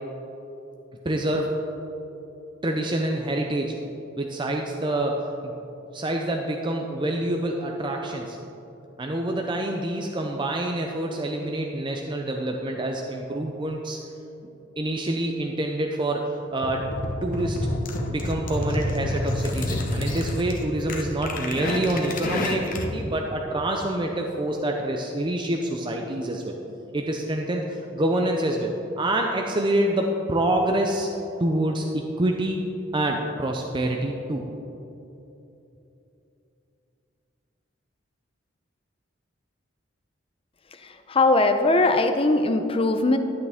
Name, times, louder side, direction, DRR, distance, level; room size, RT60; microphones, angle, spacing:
voice 1, 1.0-1.5 2.6-3.8 4.2-5.5 5.9-8.4 9.0-14.0 14.8-16.9 17.2-17.7 18.1-26.6 26.9-31.1 31.4-32.6 32.9-34.4, right 1 dB, 25° right, 1 dB, 0.5 m, -26 dB
sound 1, 16.6-23.0, left 1 dB, 45° left, 1.0 m, -29 dB
voice 2, 40.7-43.2, left 2 dB, 30° left, 7 dB, 0.6 m, -21 dB
12.5 x 8.5 x 3.6 m, 3.0 s
head